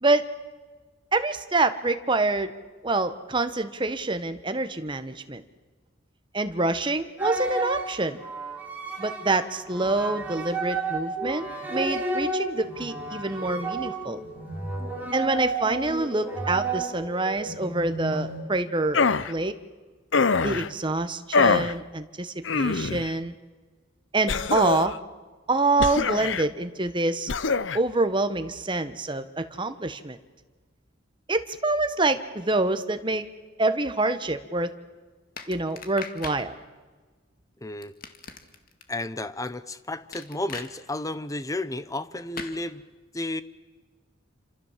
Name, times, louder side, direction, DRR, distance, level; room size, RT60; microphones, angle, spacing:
voice 1, 1.1-2.5 2.8-5.4 6.3-8.2 9.0-14.2 15.1-19.0 19.3-19.5 20.4-23.3 24.1-24.9 25.5-27.3 27.7-30.2 31.3-33.2 33.6-34.7 35.5-36.6, right 2 dB, 25° right, 9 dB, 1.3 m, -26 dB
sound 1, 7.2-18.4, right 3 dB, 10° right, 5.1 m, -32 dB
sound 2, 18.9-19.3 20.1-20.7 21.3-21.7 22.4-23.1 24.3-25.0 25.8-26.5 27.3-27.8, left 4 dB, 75° left, 0.8 m, -24 dB
sound 3, 35.4-36.4 37.8-38.8 40.1-40.7 42.4-42.6, left 5 dB, 50° left, 2.1 m, -39 dB
voice 2, 37.6-37.9 38.9-42.8 43.1-43.4, left 2 dB, 15° left, 14 dB, 0.9 m, -32 dB
28.0 x 26.5 x 7.5 m, 1.4 s
head